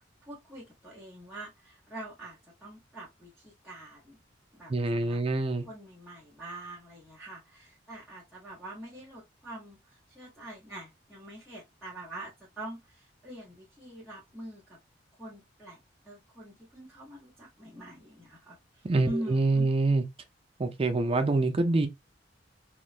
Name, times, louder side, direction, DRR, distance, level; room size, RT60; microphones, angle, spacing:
voice 1, 0.2-4.2 4.5-5.2 5.6-14.8 15.2-15.8 16.0-19.7, right 1 dB, ahead, 0.8 m, -44 dB
voice 2, 4.7-5.6 18.8-20.0 20.6-21.9, right 2 dB, 30° right, 0.4 m, -26 dB
2.9 x 2.1 x 2.4 m
head